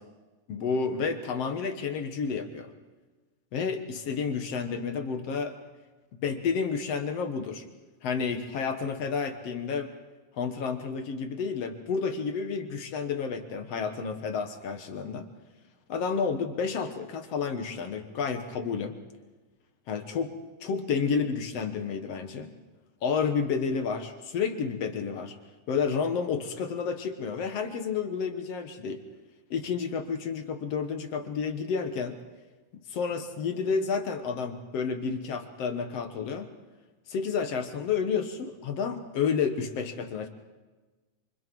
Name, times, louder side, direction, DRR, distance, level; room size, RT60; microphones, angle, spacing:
voice 1, 0.5-2.7 3.5-5.5 6.1-7.6 8.0-9.9 10.3-15.3 15.9-19.0 19.9-20.3 20.6-22.5 23.0-25.4 25.7-29.0 29.5-32.2 32.7-36.5 37.1-40.3, left 5 dB, 60° left, 6 dB, 2.2 m, -30 dB
27.5 x 24.5 x 4.7 m, 1.2 s
omnidirectional pair, 3.6 m